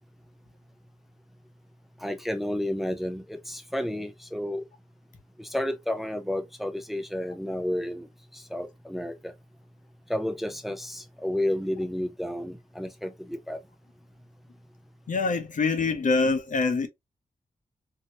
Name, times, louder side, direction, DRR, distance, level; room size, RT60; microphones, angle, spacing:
voice 1, 2.0-4.6 5.4-8.1 8.3-9.3 10.1-13.6, left 1 dB, ahead, 0.6 m, -31 dB
voice 2, 15.1-16.9, left 4 dB, 60° left, 0.8 m, -25 dB
2.8 x 2.7 x 2.8 m
cardioid pair, 55°, 15 cm